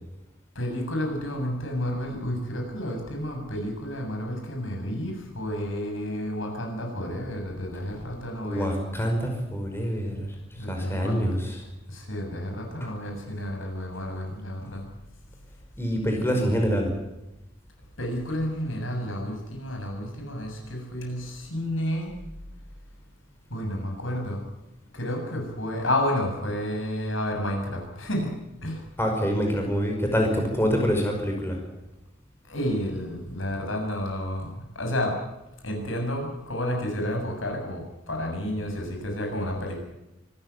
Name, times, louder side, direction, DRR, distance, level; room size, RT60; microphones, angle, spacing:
voice 1, 0.6-9.0 10.6-11.3 11.9-14.9 18.0-22.1 23.5-24.4 24.9-28.3 28.6-28.8 32.5-35.2 35.6-39.8, left 1 dB, 80° left, 2 dB, 7.4 m, -31 dB
voice 2, 8.4-10.3 10.6-11.6 15.8-16.9 29.0-31.6, equal, 10° left, 2 dB, 5.2 m, -26 dB
25.5 x 15.0 x 9.6 m, 0.95 s
head